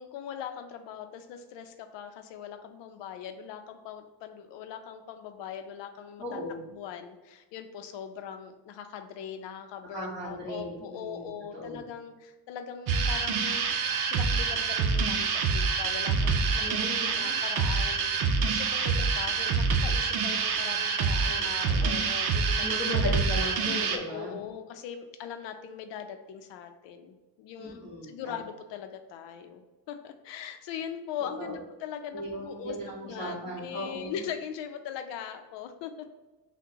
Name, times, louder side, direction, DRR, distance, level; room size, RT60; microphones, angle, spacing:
voice 1, 0.0-6.4 6.7-16.8 17.2-22.8 23.6-32.8 33.0-36.1, left 8 dB, 80° left, 7 dB, 0.6 m, -41 dB
voice 2, 6.2-6.7 9.9-11.8 16.6-17.3 21.2-22.0 22.6-24.3 27.6-28.4 31.4-31.6 32.1-34.2, equal, 20° right, -10 dB, 1.3 m, -37 dB
sound 1, 12.9-24.0, right 5 dB, 60° right, 0.6 m, -26 dB
5.9 x 2.2 x 2.8 m, 1.1 s
cardioid pair, 125°, 43 cm